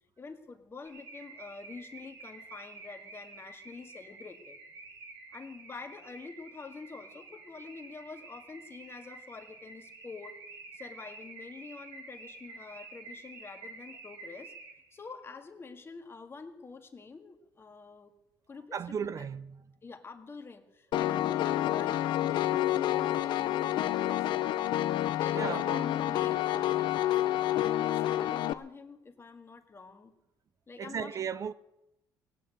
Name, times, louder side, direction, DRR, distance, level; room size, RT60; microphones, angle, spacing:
voice 1, 0.2-4.6 5.3-10.4 10.7-14.5 14.9-18.1 18.5-19.3 19.8-24.3 25.1-30.2 30.7-31.4, left 4 dB, 30° left, 1.8 m, -47 dB
Car / Alarm, 0.9-15.0, right 3 dB, 75° right, 4.7 m, -49 dB
voice 2, 18.7-19.6 25.3-25.8 30.8-31.5, right 7 dB, 40° right, 0.5 m, -35 dB
Piano, 20.9-28.5, left 13 dB, 70° left, 0.7 m, -29 dB
17.5 x 8.3 x 8.9 m
cardioid pair, 100°, 8 cm